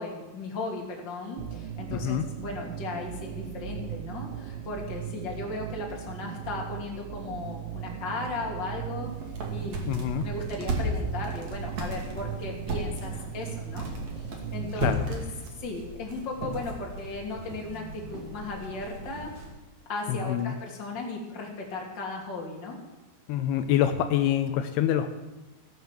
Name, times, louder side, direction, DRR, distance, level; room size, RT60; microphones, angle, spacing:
voice 1, 0.0-9.1 9.5-13.9 14.2-15.3 15.6-19.3 19.9-22.8, left 3 dB, 30° left, -1 dB, 2.8 m, -36 dB
sound 1, 1.4-14.9, right 12 dB, 75° right, 2.3 m, -38 dB
voice 2, 1.9-2.3 9.9-10.3 14.8-15.1 20.1-20.6 23.3-25.1, left 10 dB, 85° left, 8 dB, 2.7 m, -26 dB
sound 2, 9.0-19.5, right 1 dB, 50° right, 3.3 m, -35 dB
16.0 x 9.4 x 7.5 m, 1.1 s
omnidirectional pair, 4.7 m